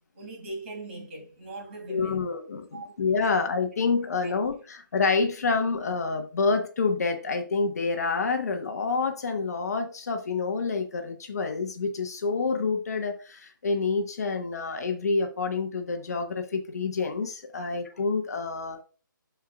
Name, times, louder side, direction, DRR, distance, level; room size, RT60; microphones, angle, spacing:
voice 1, 0.1-2.3 2.7-2.9 4.2-4.3 17.6-17.7, right 2 dB, 35° right, 3.0 m, -40 dB
voice 2, 1.9-18.8, left 4 dB, 50° left, 1.2 m, -28 dB
12.0 x 4.6 x 2.4 m
hypercardioid pair, 165°, 11 cm